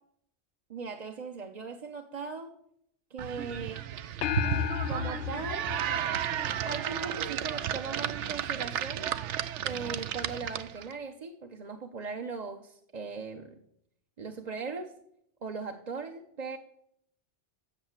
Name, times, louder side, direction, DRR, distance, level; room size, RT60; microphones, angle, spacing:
voice 1, 0.7-2.5 3.1-3.9 4.8-5.7 6.5-9.1 9.6-13.6 14.2-14.9 15.4-16.6, right 4 dB, 40° right, 3 dB, 0.8 m, -39 dB
sound 1, 3.2-10.9, right 10 dB, 80° right, 0.9 m, -33 dB
sound 2, 4.2-6.9, left 10 dB, 75° left, 0.9 m, -33 dB
10.0 x 7.3 x 7.2 m, 0.74 s
omnidirectional pair, 1.2 m